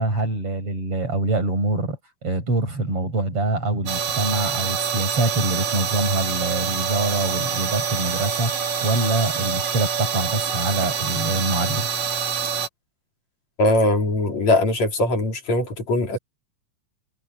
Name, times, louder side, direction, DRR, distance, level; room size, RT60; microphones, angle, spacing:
voice 1, 0.0-8.5 8.8-11.9, right 2 dB, 45° right, 8.7 m, -24 dB
sound 1, 3.9-12.7, right 7 dB, 65° right, 3.8 m, -26 dB
voice 2, 13.6-16.2, left 1 dB, 60° left, 5.4 m, -21 dB
omnidirectional pair, 3.5 m